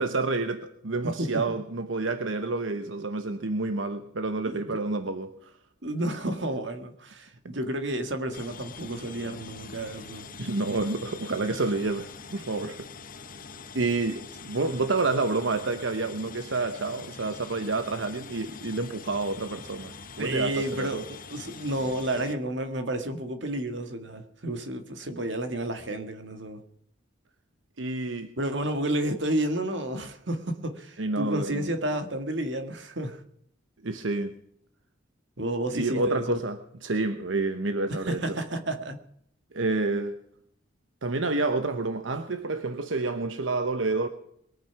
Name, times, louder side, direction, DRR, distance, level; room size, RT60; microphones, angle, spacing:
voice 1, 0.0-5.5 10.4-12.9 13.7-21.0 27.8-28.3 31.0-31.7 33.8-34.3 35.7-38.4 39.5-40.2 41.0-44.1, right 3 dB, 85° right, 1.0 m, -29 dB
voice 2, 1.0-1.4 4.4-4.8 5.8-10.2 20.2-26.6 28.4-33.2 35.4-36.4 38.0-39.0, right 1 dB, 65° right, 1.8 m, -31 dB
sound 1, 8.3-22.3, left 5 dB, 45° left, 1.0 m, -44 dB
22.0 x 9.1 x 5.9 m
head